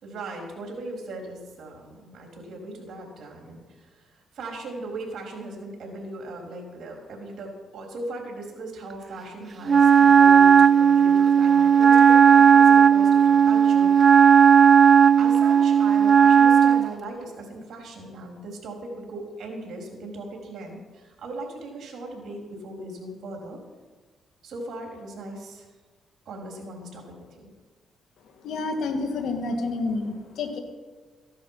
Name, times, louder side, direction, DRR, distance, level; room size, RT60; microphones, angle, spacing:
voice 1, 0.0-14.5 15.2-23.6 24.4-25.7 26.3-27.5, right 2 dB, 60° right, 1 dB, 4.1 m, -38 dB
Wind instrument woodwind instrument, 9.7-16.9, right 7 dB, 45° right, 0.3 m, -15 dB
voice 2, 28.4-30.6, left 3 dB, 75° left, 4 dB, 2.3 m, -29 dB
15.0 x 11.0 x 5.8 m, 1.4 s
cardioid pair, 90°, 0 cm